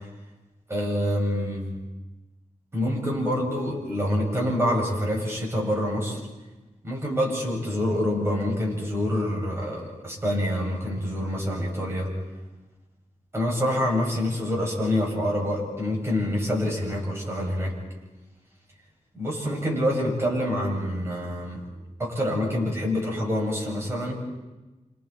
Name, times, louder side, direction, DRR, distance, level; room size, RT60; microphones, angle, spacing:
voice 1, 0.7-1.7 2.7-6.2 6.8-12.1 13.3-17.7 19.1-21.6 22.0-24.2, left 1 dB, 20° right, -3 dB, 7.5 m, -26 dB
30.0 x 26.5 x 4.5 m, 1.1 s
wide cardioid pair, 120°, 13 cm